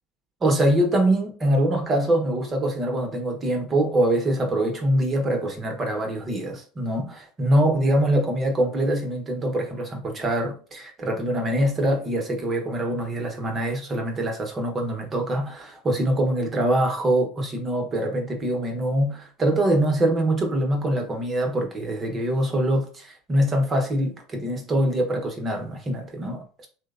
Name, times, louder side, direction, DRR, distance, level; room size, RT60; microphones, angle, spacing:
voice 1, 0.4-26.7, right 1 dB, 30° right, 0.8 m, -24 dB
2.9 x 2.0 x 2.4 m
hypercardioid pair, 95°, 0 cm